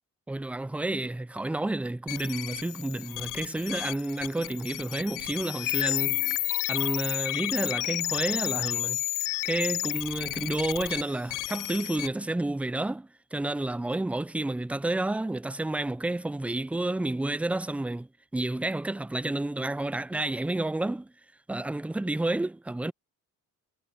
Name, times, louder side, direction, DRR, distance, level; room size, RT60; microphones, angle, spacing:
voice 1, 0.3-6.2 6.7-9.0 9.4-18.1 18.3-21.1 21.5-22.9, right 2 dB, 5° right, 0.3 m, -30 dB
sound 1, 2.1-12.1, left 18 dB, 75° left, 0.5 m, -31 dB
cardioid pair, 95°, 32 cm